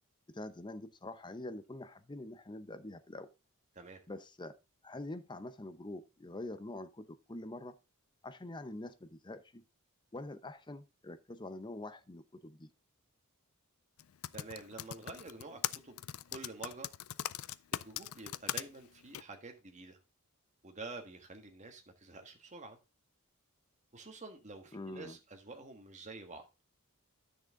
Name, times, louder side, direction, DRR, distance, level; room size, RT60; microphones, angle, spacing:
voice 1, 0.3-3.3 4.1-4.5 4.8-7.7 8.2-9.6 10.1-12.7 24.7-25.2, left 2 dB, 20° left, 0.7 m, -45 dB
Typing, 14.0-18.6 19.1-19.2, left 12 dB, 70° left, 0.4 m, -39 dB
voice 2, 14.3-16.0 16.3-16.9 17.7-20.0 20.6-22.8 23.9-26.4, right 3 dB, 35° right, 1.5 m, -48 dB
10.0 x 6.6 x 3.7 m
head